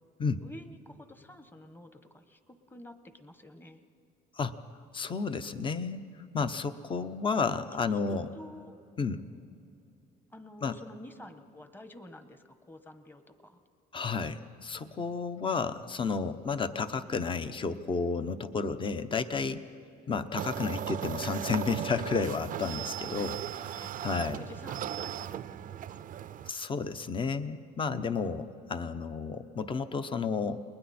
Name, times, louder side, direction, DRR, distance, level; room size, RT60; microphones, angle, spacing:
voice 1, 0.4-3.8 7.8-8.8 10.3-13.6 20.6-20.8 23.8-26.4, left 1 dB, 10° left, 9 dB, 1.3 m, -50 dB
voice 2, 4.9-6.1 6.3-8.3 9.0-9.2 10.6-10.8 13.9-19.6 20.1-24.4 26.5-30.6, left 5 dB, 30° left, 11 dB, 0.9 m, -32 dB
sound 1, 20.4-26.5, right 11 dB, 50° right, 0.5 m, -37 dB
30.0 x 21.0 x 4.3 m, 2.6 s
cardioid pair, 110°, 17 cm